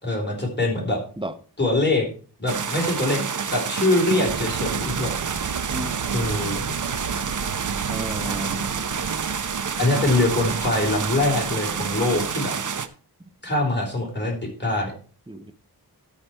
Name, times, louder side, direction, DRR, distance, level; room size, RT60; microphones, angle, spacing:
voice 1, 0.0-1.0 1.6-2.1 2.4-5.1 6.1-6.6 9.8-12.5 13.4-14.9, left 2 dB, 25° left, 4.2 m, -23 dB
sound 1, 2.5-12.9, right 6 dB, 50° right, 0.7 m, -28 dB
sound 2, 4.3-12.3, right 6 dB, 85° right, 0.8 m, -34 dB
voice 2, 7.9-8.6 13.2-13.3 15.3-15.5, right 1 dB, 15° right, 0.9 m, -33 dB
13.0 x 5.0 x 4.4 m
wide cardioid pair, 55°, 39 cm